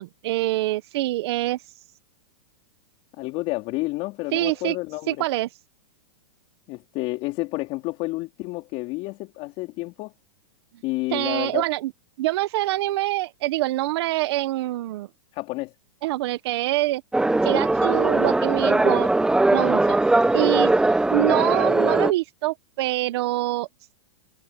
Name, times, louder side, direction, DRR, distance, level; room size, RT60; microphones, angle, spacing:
voice 1, 0.0-1.6 4.3-4.8 5.1-5.5 11.1-11.9 12.2-15.1 16.0-17.0 17.4-19.1 19.5-20.0 20.3-20.7 21.1-23.7, right 17 dB, 60° right, 1.2 m, -25 dB
voice 2, 3.2-5.2 6.7-10.1 10.8-11.6 15.3-15.7, left 22 dB, 40° left, 4.2 m, -30 dB
sound 1, 17.1-22.1, right 2 dB, 5° right, 0.8 m, -20 dB
hypercardioid pair, 130°, 15 cm